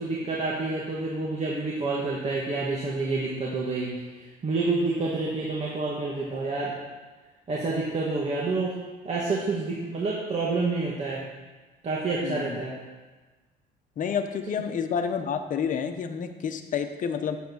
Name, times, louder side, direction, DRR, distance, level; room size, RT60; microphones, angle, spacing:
voice 1, 0.0-6.7 7.5-8.7 9.0-11.2 11.8-12.8, right 3 dB, 40° right, -5 dB, 2.3 m, -28 dB
voice 2, 14.0-17.4, left 7 dB, 50° left, 7 dB, 1.1 m, -29 dB
10.0 x 8.1 x 6.4 m, 1.3 s
cardioid pair, 110°, 17 cm